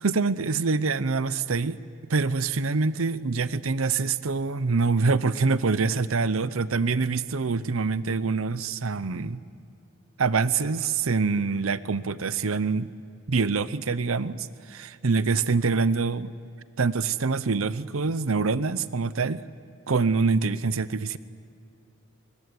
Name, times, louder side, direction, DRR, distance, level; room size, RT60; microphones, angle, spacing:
voice 1, 0.0-1.8 2.1-9.4 10.2-12.9 13.3-16.3 16.8-19.4 19.9-21.2, right 4 dB, 85° right, 15 dB, 0.8 m, -25 dB
23.0 x 20.5 x 9.5 m, 2.5 s
head